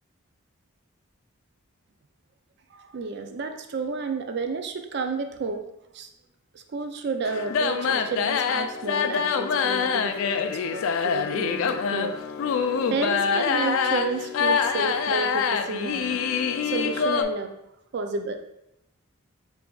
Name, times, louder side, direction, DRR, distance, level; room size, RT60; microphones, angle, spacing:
voice 1, 2.7-5.6 5.9-6.1 6.5-12.2 12.9-16.2 16.6-17.5 17.9-18.4, right 4 dB, 50° right, 6 dB, 0.4 m, -31 dB
sound 1, 7.2-17.2, left 6 dB, 70° left, 0.3 m, -25 dB
6.7 x 2.5 x 2.3 m, 0.85 s
head